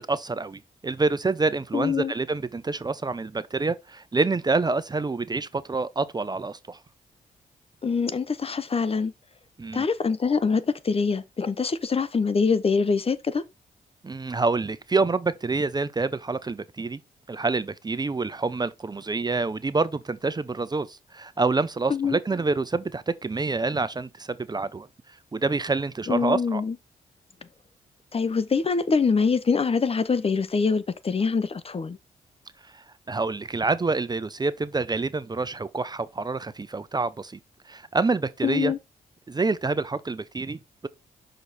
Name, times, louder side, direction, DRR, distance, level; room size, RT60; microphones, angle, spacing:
voice 1, 0.1-6.8 9.6-9.8 14.0-17.0 17.3-24.9 25.3-26.6 32.7-37.4 37.7-38.7 39.3-40.9, right 3 dB, 25° right, 0.6 m, -27 dB
voice 2, 1.7-2.1 7.8-9.1 9.7-13.4 21.9-22.2 26.1-26.7 28.1-32.0 38.4-38.8, left 5 dB, 40° left, 0.8 m, -24 dB
6.0 x 5.1 x 4.2 m
supercardioid pair, 60°, 16 cm